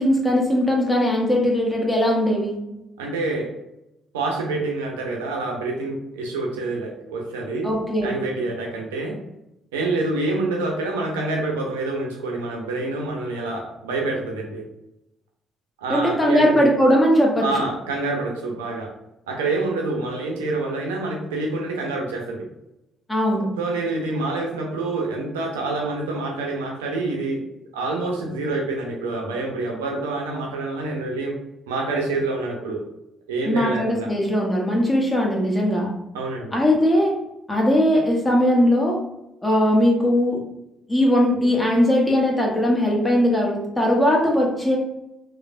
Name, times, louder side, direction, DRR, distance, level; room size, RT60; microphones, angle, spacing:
voice 1, 0.0-2.6 7.6-8.1 15.9-17.5 23.1-23.5 33.5-35.9 36.5-37.1 37.5-39.0 39.4-40.4 40.9-44.8, equal, 15° left, -1 dB, 0.9 m, -19 dB
voice 2, 3.0-3.5 4.1-7.7 8.0-9.2 9.7-14.6 15.8-16.7 17.4-18.9 19.3-22.5 23.6-27.4 27.7-31.3 31.7-32.8 33.3-34.1 36.1-36.6, right 2 dB, 85° right, 0 dB, 0.5 m, -27 dB
3.2 x 2.0 x 2.4 m, 0.87 s
hypercardioid pair, 45°, 0 cm